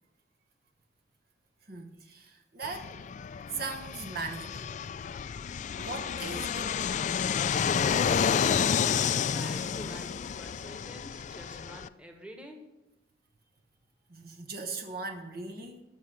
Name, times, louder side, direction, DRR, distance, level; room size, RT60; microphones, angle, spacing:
voice 1, 1.6-3.2 3.5-4.7 5.8-6.9 7.5-7.6 14.1-15.8, right 4 dB, 55° right, 4 dB, 1.1 m, -39 dB
Fixed-wing aircraft airplane, 2.6-11.9, left 7 dB, 40° left, 0.3 m, -30 dB
voice 2, 8.3-10.1 10.4-12.6, equal, 5° right, 3 dB, 1.4 m, -47 dB
13.0 x 5.7 x 6.4 m, 0.95 s
head